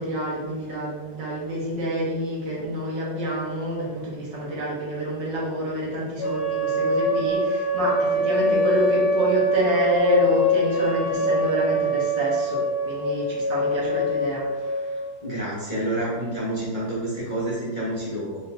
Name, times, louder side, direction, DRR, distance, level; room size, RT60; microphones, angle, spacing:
voice 1, 0.0-14.9, right 1 dB, 80° right, -4 dB, 1.7 m, -27 dB
sound 1, 6.2-15.2, left 1 dB, 75° left, 1.1 m, -24 dB
voice 2, 15.2-18.4, right 1 dB, 20° left, -8 dB, 0.9 m, -28 dB
4.1 x 3.7 x 2.6 m, 1.2 s
omnidirectional pair, 1.9 m